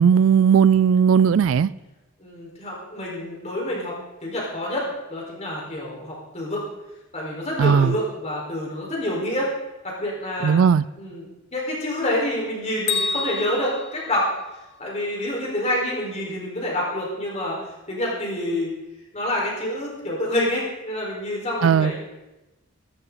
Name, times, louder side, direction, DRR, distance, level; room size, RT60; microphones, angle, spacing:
voice 1, 0.0-1.7 7.6-7.9 10.4-10.8 21.6-21.9, right 7 dB, 70° right, 0.3 m, -17 dB
voice 2, 2.2-3.9 4.2-6.6 7.1-9.5 9.8-10.6 11.0-11.2 11.5-14.3 14.8-17.6 17.9-18.7 19.1-22.0, left 1 dB, 35° left, 4.5 m, -27 dB
Bell, 12.9-14.9, left 5 dB, 60° left, 1.2 m, -29 dB
15.0 x 14.0 x 4.0 m
head